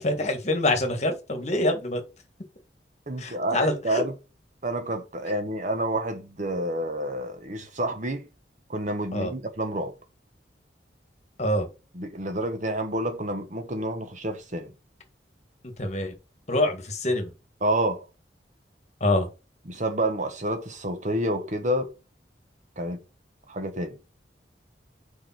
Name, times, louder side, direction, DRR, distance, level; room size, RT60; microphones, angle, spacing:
voice 1, 0.0-2.0 3.2-4.0 9.1-9.3 11.4-11.7 15.8-16.1 16.5-17.3 19.0-19.3, left 1 dB, 40° left, 1.6 m, -25 dB
voice 2, 3.1-4.1 4.6-8.3 8.7-9.9 11.9-14.7 17.6-18.1 19.7-21.9 22.8-23.0 23.5-24.0, right 1 dB, 45° right, 1.1 m, -29 dB
5.1 x 4.9 x 5.8 m
head